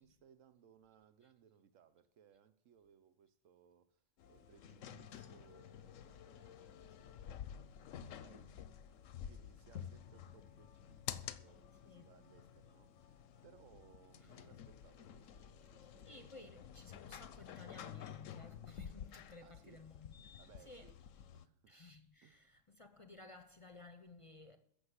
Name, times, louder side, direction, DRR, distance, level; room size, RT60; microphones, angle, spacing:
voice 1, 0.0-8.5 9.1-16.7 19.4-19.9 20.4-21.0 21.3-21.7 22.2-22.6, right 8 dB, 80° right, 1.2 m, -66 dB
sound 1, 4.2-21.5, left 9 dB, 90° left, 1.1 m, -51 dB
voice 2, 16.0-20.3 20.7-20.9 21.7-24.6, left 3 dB, 30° left, 0.7 m, -56 dB
14.0 x 6.4 x 8.0 m
omnidirectional pair, 1.3 m